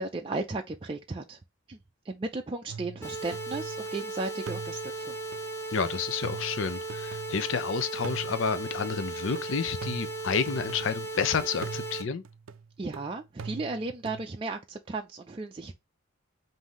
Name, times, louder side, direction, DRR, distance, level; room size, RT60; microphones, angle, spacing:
voice 1, 0.0-1.4 1.7-1.8 2.1-5.2 12.8-15.7, right 3 dB, 25° right, 0.4 m, -35 dB
sound 1, 2.7-4.0 4.5-7.6 8.0-11.2 11.6-14.3, right 5 dB, 85° right, 0.4 m, -43 dB
sound 2, 3.0-12.0, right 2 dB, 10° left, 0.9 m, -37 dB
voice 2, 5.7-12.2, left 5 dB, 70° left, 0.6 m, -30 dB
5.5 x 2.7 x 3.0 m
head